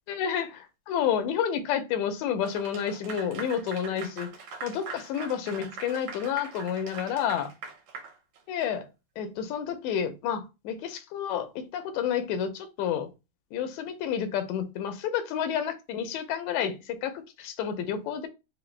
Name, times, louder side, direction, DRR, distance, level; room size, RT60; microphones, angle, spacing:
voice 1, 0.1-4.3 4.6-7.5 8.5-8.9 9.2-13.1 13.5-18.3, left 8 dB, 80° left, 1.9 m, -30 dB
Clapping / Applause, 2.4-8.8, right 5 dB, 70° right, 2.1 m, -42 dB
4.9 x 2.1 x 3.2 m
omnidirectional pair, 3.3 m